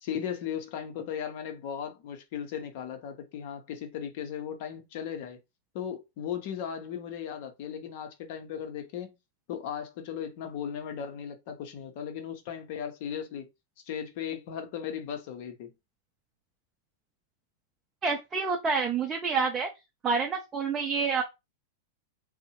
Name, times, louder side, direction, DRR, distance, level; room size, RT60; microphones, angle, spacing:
voice 1, 0.0-5.4 5.7-9.1 9.5-13.5 13.9-15.7, left 8 dB, 55° left, 0.7 m, -37 dB
voice 2, 18.0-19.7 20.0-21.2, right 5 dB, 25° right, 0.5 m, -28 dB
2.7 x 2.1 x 2.8 m
hypercardioid pair, 105°, 0 cm